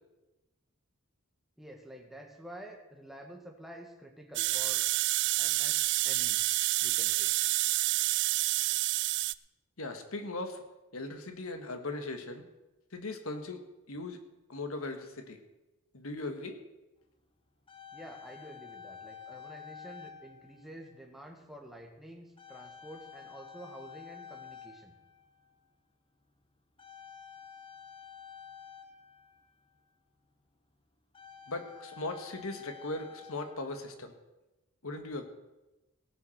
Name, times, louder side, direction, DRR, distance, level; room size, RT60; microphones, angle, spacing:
voice 1, 1.6-4.8 5.4-7.3 17.9-25.0, right 1 dB, ahead, 1 dB, 1.7 m, -49 dB
sound 1, 4.4-9.3, right 18 dB, 55° right, 0.3 m, -28 dB
voice 2, 9.8-10.6 10.9-12.4 12.9-13.6 13.9-14.2 14.5-15.4 15.9-16.6 31.5-34.1 34.8-35.3, left 2 dB, 75° left, 6 dB, 1.6 m, -38 dB
sound 2, 17.2-17.3 17.5-21.0 21.7-21.9 22.4-25.7 26.8-29.8 30.6-30.7 31.0-34.1, left 7 dB, 25° left, 1.1 m, -50 dB
18.0 x 7.2 x 6.4 m, 1.0 s
head